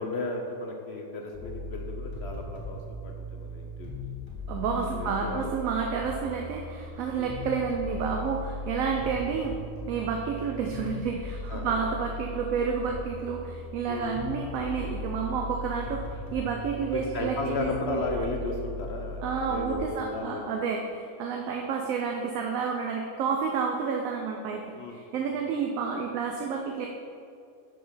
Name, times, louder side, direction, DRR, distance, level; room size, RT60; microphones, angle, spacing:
voice 1, 0.0-3.9 4.8-5.4 7.2-7.3 8.9-9.1 11.5-11.8 13.9-14.2 16.9-20.4 24.7-25.0, left 2 dB, 60° left, 2 dB, 0.8 m, -34 dB
sound 1, 1.3-19.8, left 2 dB, 20° left, 1.3 m, -38 dB
voice 2, 4.5-9.6 9.9-18.0 19.2-26.9, right 6 dB, 70° right, 2 dB, 1.0 m, -30 dB
6.0 x 4.9 x 5.5 m, 2.4 s
omnidirectional pair, 1.5 m